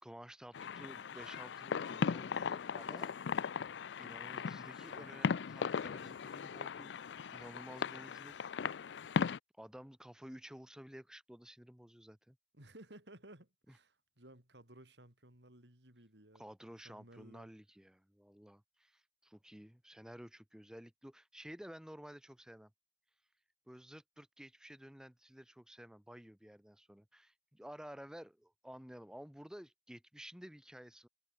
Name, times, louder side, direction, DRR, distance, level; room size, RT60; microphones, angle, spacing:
voice 1, 0.0-3.1 4.0-6.9 7.3-8.3 8.7-8.8 9.6-12.4 16.3-22.7 23.7-31.1, equal, 5° right, 0.7 m, -53 dB
sound 1, 0.5-9.4, left 6 dB, 85° left, 0.4 m, -38 dB
voice 2, 12.5-17.5, right 1 dB, 80° right, 6.6 m, -58 dB
head